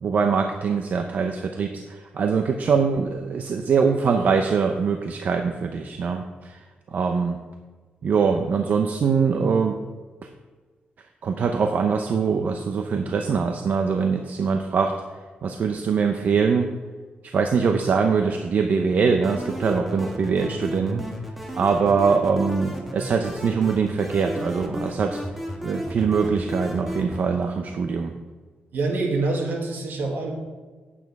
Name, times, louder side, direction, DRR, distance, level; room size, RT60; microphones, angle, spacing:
voice 1, 0.0-6.6 6.9-7.4 8.0-9.8 11.2-14.9 15.4-16.7 17.3-21.1 21.5-25.2 25.6-28.1, right 5 dB, 55° right, 5 dB, 0.7 m, -23 dB
sound 1, 19.2-27.2, equal, 5° right, 1.4 m, -34 dB
voice 2, 28.7-30.3, right 3 dB, 75° right, 1 dB, 2.2 m, -25 dB
9.2 x 8.6 x 4.8 m, 1.4 s
wide cardioid pair, 130°, 3 cm